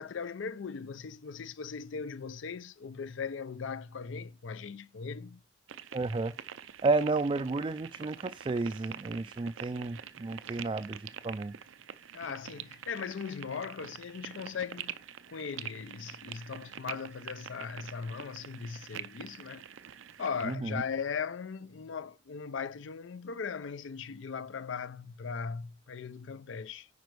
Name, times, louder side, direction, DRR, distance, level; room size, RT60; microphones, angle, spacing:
voice 1, 0.0-5.4 12.1-15.0 15.3-19.6 20.2-26.9, left 6 dB, 80° left, 0.5 m, -38 dB
sound 1, 5.7-20.6, right 9 dB, 80° right, 0.5 m, -46 dB
voice 2, 5.9-6.3 6.8-11.5 20.4-20.8, right 3 dB, 25° right, 0.3 m, -31 dB
9.4 x 5.1 x 4.6 m
head